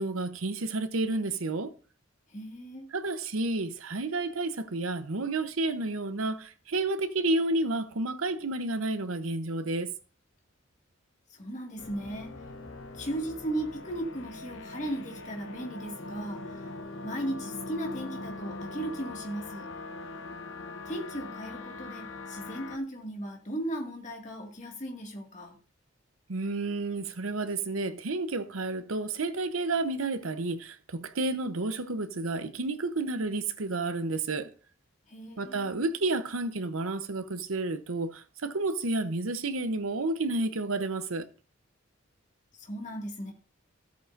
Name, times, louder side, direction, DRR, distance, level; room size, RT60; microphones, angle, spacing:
voice 1, 0.0-1.7 2.9-9.9 26.3-34.5 35.4-41.2, right 2 dB, 90° right, 0.8 m, -31 dB
voice 2, 2.3-2.9 11.3-12.3 12.9-16.7 17.0-19.7 20.9-25.6 35.1-35.8 42.6-43.3, right 1 dB, 35° left, 2.0 m, -36 dB
sound 1, 11.8-22.8, left 3 dB, 75° left, 1.0 m, -42 dB
14.5 x 8.4 x 2.6 m
head